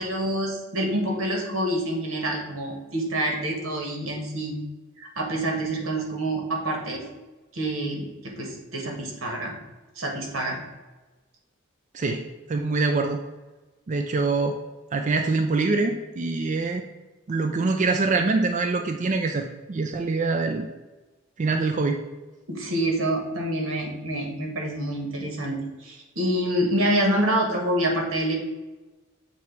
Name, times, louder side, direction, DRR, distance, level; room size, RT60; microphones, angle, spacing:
voice 1, 0.0-4.6 5.0-7.0 7.5-9.5 10.0-10.6 22.5-28.4, right 1 dB, 85° right, 1 dB, 1.5 m, -27 dB
voice 2, 11.9-13.2 13.9-14.5 14.9-16.8 17.3-20.7 21.4-22.0, right 3 dB, 35° right, 4 dB, 0.4 m, -24 dB
7.2 x 3.1 x 4.6 m, 1.2 s
head